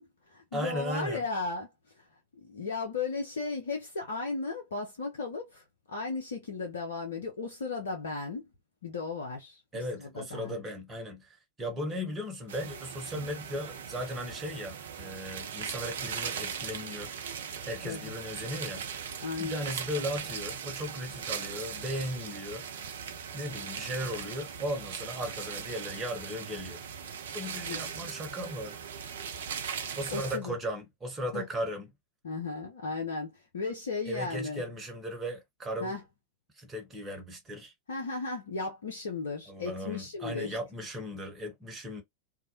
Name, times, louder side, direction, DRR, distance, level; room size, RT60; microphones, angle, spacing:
voice 1, 0.0-1.7 2.0-2.1 2.3-8.5 8.8-9.6 10.0-10.6 17.8-18.1 19.2-19.6 27.7-27.8 30.1-30.5 31.3-31.4 32.2-34.6 35.8-36.0 37.9-40.6, left 4 dB, 65° left, 0.6 m, -35 dB
voice 2, 0.5-1.2 9.7-17.1 17.7-18.8 19.4-22.6 23.3-26.8 27.3-28.8 30.0-31.9 34.1-35.9 36.6-37.7 39.5-42.0, equal, 15° right, 1.0 m, -37 dB
sound 1, 12.5-30.4, right 7 dB, 60° right, 0.4 m, -39 dB
2.4 x 2.1 x 2.8 m
figure-of-eight pair, 90°, 0 cm